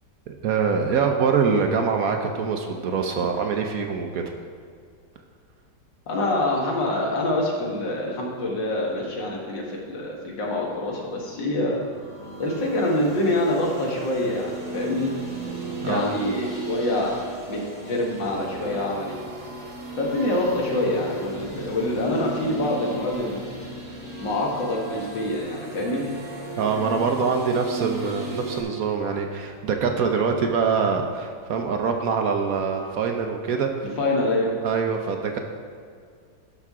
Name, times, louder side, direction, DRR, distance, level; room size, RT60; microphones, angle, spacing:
voice 1, 0.3-4.2 15.8-16.1 26.6-33.7 34.6-35.4, right 5 dB, 65° right, 3 dB, 1.0 m, -24 dB
voice 2, 6.1-11.8 12.4-15.1 15.8-17.2 17.5-17.6 17.9-19.2 20.0-23.4 24.2-26.0 34.0-34.5, left 1 dB, 90° left, -2 dB, 2.2 m, -25 dB
sound 1, 11.7-28.6, right 2 dB, 45° right, 2.0 m, -35 dB
11.5 x 6.0 x 3.6 m, 2.1 s
omnidirectional pair, 1.9 m